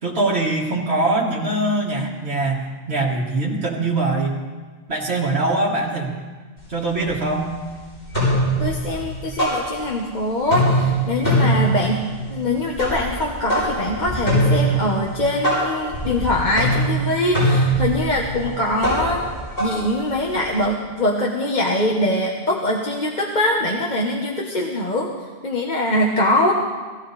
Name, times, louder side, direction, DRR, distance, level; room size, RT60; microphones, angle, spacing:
voice 1, 0.0-4.4 4.9-6.1 6.7-7.5 18.4-18.5, right 2 dB, 80° right, -3 dB, 2.0 m, -22 dB
sound 1, 6.6-6.7 7.0-7.7 8.0-10.2 10.4-20.6, right 1 dB, 75° left, 7.1 m, -23 dB
voice 2, 8.6-19.2 19.6-25.1 25.4-26.5, left 1 dB, 45° left, -1 dB, 1.3 m, -22 dB
19.0 x 15.0 x 4.1 m, 1.4 s
omnidirectional pair, 1.1 m